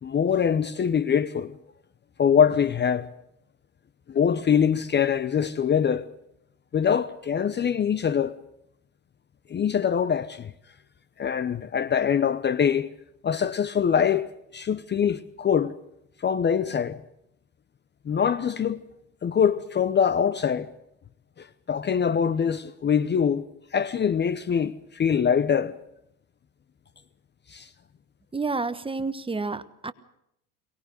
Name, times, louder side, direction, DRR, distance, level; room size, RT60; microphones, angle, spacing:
voice 1, 0.0-1.6 2.2-3.1 4.1-6.1 6.7-8.4 9.5-10.5 11.2-12.9 13.2-15.7 16.2-17.0 18.1-18.8 19.2-20.7 21.4-23.4 23.7-25.8 27.5-27.7, left 7 dB, 25° left, 0.9 m, -23 dB
voice 2, 28.3-29.9, right 3 dB, 10° right, 1.2 m, -29 dB
23.0 x 20.0 x 6.5 m
hypercardioid pair, 90°, 43 cm